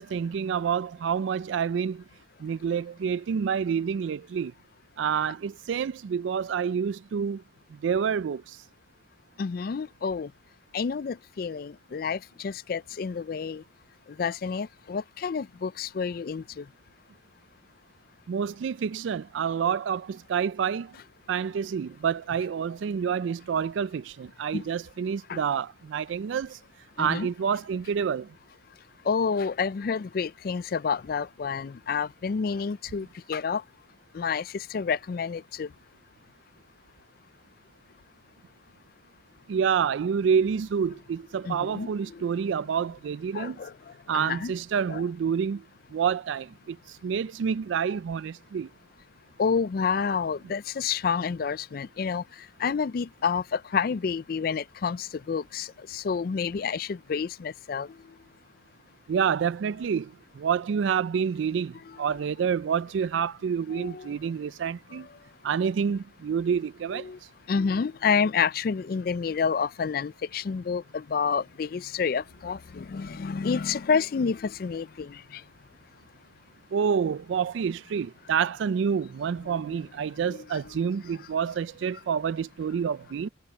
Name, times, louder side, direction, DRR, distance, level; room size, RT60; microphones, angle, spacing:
voice 1, 0.0-2.0 2.4-4.5 5.0-7.4 7.7-8.6 18.3-20.9 21.3-26.6 27.0-28.3 39.5-43.6 44.1-45.6 45.9-48.7 59.1-65.1 65.4-67.1 76.7-83.3, right 7 dB, 80° right, 0.4 m, -28 dB
voice 2, 9.4-10.3 10.7-13.6 14.2-16.7 24.5-24.6 25.3-25.4 27.0-27.3 29.1-33.6 34.1-35.7 41.4-42.2 43.3-43.7 44.1-44.5 44.9-45.0 49.4-52.2 52.6-57.9 61.9-62.0 63.7-64.1 64.9-65.0 66.9-67.2 67.5-75.4 80.3-80.4, left 6 dB, 50° left, 0.3 m, -29 dB
head